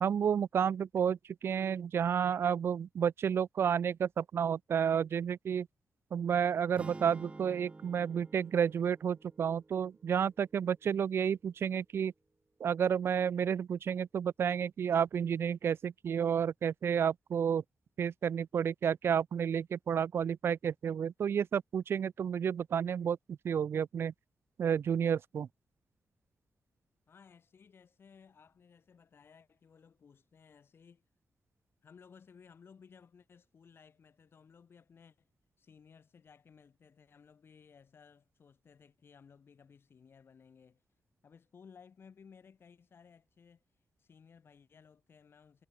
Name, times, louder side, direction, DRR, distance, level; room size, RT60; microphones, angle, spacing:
voice 1, 0.0-5.7 6.1-12.1 12.6-17.6 18.0-24.1 24.6-25.5, right 8 dB, 65° right, 0.3 m, -31 dB
sound 1, 6.8-10.9, right 3 dB, 25° right, 0.9 m, -50 dB
voice 2, 27.1-31.0 31.8-35.3 35.6-40.8 41.2-43.6 44.0-45.7, left 6 dB, 60° left, 2.3 m, -59 dB
cardioid pair, 85°, 4 cm